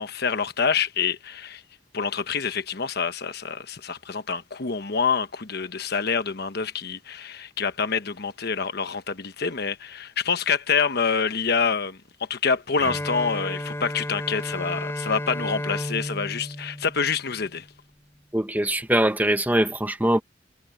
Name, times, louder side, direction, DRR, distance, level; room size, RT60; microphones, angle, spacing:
voice 1, 0.0-1.6 1.9-17.7, left 5 dB, 55° left, 1.1 m, -26 dB
Bowed string instrument, 12.8-17.7, left 1 dB, 15° left, 3.5 m, -33 dB
voice 2, 18.3-20.2, right 1 dB, 10° right, 1.5 m, -22 dB
head